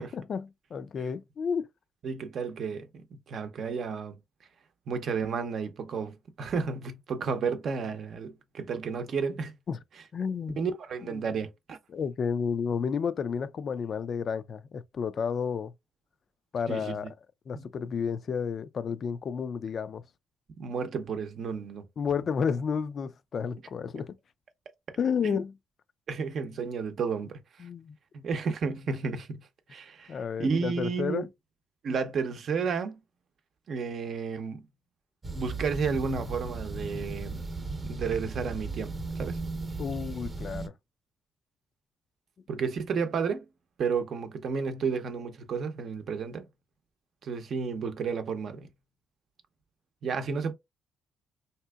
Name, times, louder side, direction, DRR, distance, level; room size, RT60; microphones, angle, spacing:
voice 1, 0.0-1.7 9.7-9.8 10.1-10.6 11.0-11.3 11.9-15.7 16.5-17.1 17.5-20.0 22.0-24.2 25.0-25.6 27.6-28.0 30.1-31.3 39.8-40.7, left 6 dB, 55° left, 0.3 m, -31 dB
voice 2, 2.0-4.2 4.9-9.5 10.6-11.8 16.7-17.0 17.5-17.6 20.6-21.8 25.2-25.4 26.1-27.7 28.1-31.3 31.8-33.0 33.7-34.6 35.3-37.4 37.8-39.4 42.5-43.5 43.8-46.5 47.2-48.7 50.0-50.5, right 5 dB, 60° right, 0.6 m, -32 dB
sound 1, 35.2-40.7, right 3 dB, 30° right, 0.7 m, -36 dB
3.4 x 2.8 x 2.2 m
cardioid pair, 90°, 0 cm